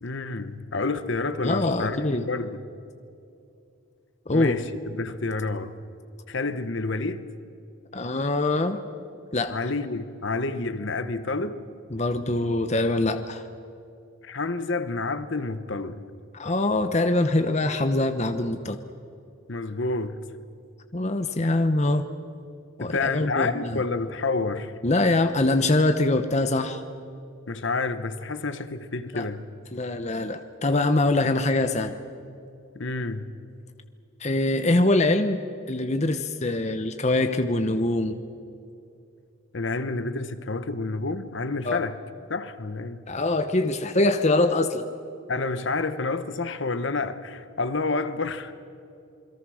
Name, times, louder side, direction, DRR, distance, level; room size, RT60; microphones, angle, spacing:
voice 1, 0.0-2.6 4.3-5.7 6.3-7.2 9.5-11.6 14.2-16.0 19.5-20.2 22.8-24.7 27.5-29.5 32.7-33.3 39.5-42.0 42.3-43.0 45.3-48.5, left 3 dB, 55° left, 1.0 m, -29 dB
voice 2, 1.4-2.2 4.3-4.6 7.9-8.8 9.3-9.6 11.9-13.4 16.3-18.8 20.9-22.1 22.8-23.7 24.8-26.8 29.1-29.3 29.7-31.9 34.2-35.4 35.7-38.2 41.6-41.8 43.1-44.9, left 2 dB, 30° left, 0.9 m, -23 dB
28.0 x 22.0 x 6.4 m
head